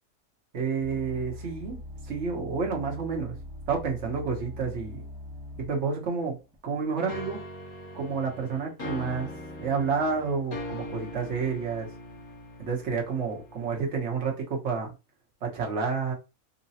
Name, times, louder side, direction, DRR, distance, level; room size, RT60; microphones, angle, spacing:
voice 1, 0.5-3.4 3.7-5.0 5.6-6.4 6.6-7.4 7.9-9.3 9.6-11.9 12.6-14.9 15.4-16.1, right 5 dB, 55° right, 1.2 m, -30 dB
sound 1, 0.8-5.9 6.5-6.6, left 1 dB, 5° right, 0.4 m, -41 dB
sound 2, 7.1-13.9, left 1 dB, 85° left, 1.6 m, -41 dB
3.9 x 2.2 x 2.7 m
omnidirectional pair, 1.5 m